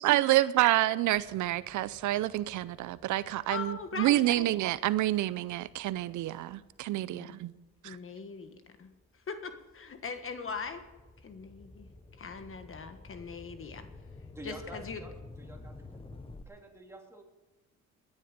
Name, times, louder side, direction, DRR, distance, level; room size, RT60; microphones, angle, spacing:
voice 1, 0.0-7.5 7.8-8.0, right 15 dB, 75° right, 0.5 m, -28 dB
sound 1, 1.1-7.9 8.5-16.4, left 2 dB, 20° left, 0.9 m, -52 dB
voice 2, 3.5-4.5 7.1-7.4 7.8-8.9 9.3-10.8 11.2-11.9 12.2-13.9 14.4-15.0, left 5 dB, 45° left, 1.4 m, -41 dB
voice 3, 14.3-16.2 16.4-17.2, right 1 dB, 10° right, 2.8 m, -48 dB
18.0 x 10.5 x 5.2 m
cardioid pair, 90°, 30 cm